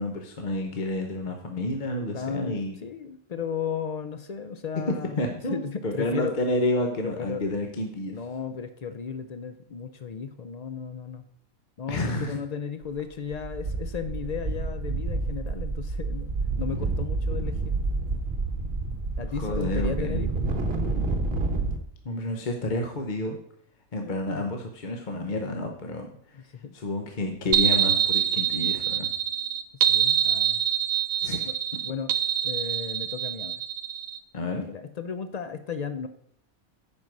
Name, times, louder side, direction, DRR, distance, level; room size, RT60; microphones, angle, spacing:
voice 1, 0.0-2.8 5.2-8.2 11.9-12.4 19.2-20.2 22.0-23.4 23.9-26.4 26.7-29.1 31.2-31.5 34.3-34.6, left 2 dB, 40° left, 3 dB, 0.9 m, -30 dB
voice 2, 2.1-5.2 5.5-6.3 7.0-7.4 8.1-11.2 11.8-16.3 16.6-17.8 19.2-20.4 24.0-24.4 26.3-26.7 29.7-30.6 31.4-31.5 31.8-32.1 32.4-33.5 34.6-36.1, left 6 dB, 85° left, 10 dB, 0.3 m, -35 dB
sound 1, 12.8-13.0 13.3-21.8, right 3 dB, 50° right, 1.2 m, -29 dB
sound 2, 27.5-34.2, right 9 dB, 75° right, 1.1 m, -25 dB
9.3 x 5.4 x 6.1 m, 0.67 s
omnidirectional pair, 1.4 m